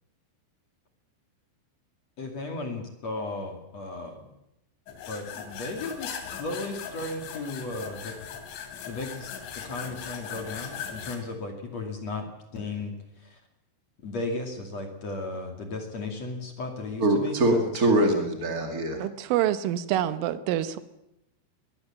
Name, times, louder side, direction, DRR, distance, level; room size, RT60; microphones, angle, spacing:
voice 1, 2.2-4.3 5.1-8.2 8.6-13.4 14.0-17.9, left 2 dB, 40° left, 4 dB, 2.8 m, -35 dB
sound 1, 4.9-11.2, left 7 dB, 85° left, 5.2 m, -39 dB
voice 2, 17.0-19.0, right 1 dB, 50° right, 4 dB, 1.0 m, -23 dB
voice 3, 19.0-20.8, right 12 dB, 85° right, 12 dB, 3.7 m, -26 dB
22.0 x 21.0 x 7.4 m, 0.87 s
omnidirectional pair, 5.6 m